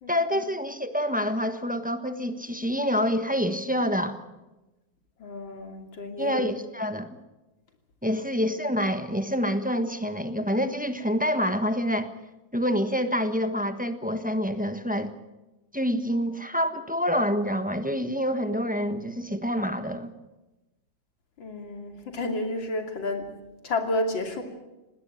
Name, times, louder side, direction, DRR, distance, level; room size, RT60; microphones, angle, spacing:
voice 1, 0.1-4.2 6.2-7.2 8.0-12.1 12.5-15.1 15.7-20.1, equal, 5° right, 9 dB, 0.9 m, -27 dB
voice 2, 5.2-6.4 8.1-8.2 21.4-23.3 23.6-24.4, left 2 dB, 80° left, 4 dB, 3.5 m, -31 dB
20.5 x 17.5 x 9.0 m, 1.0 s
omnidirectional pair, 2.0 m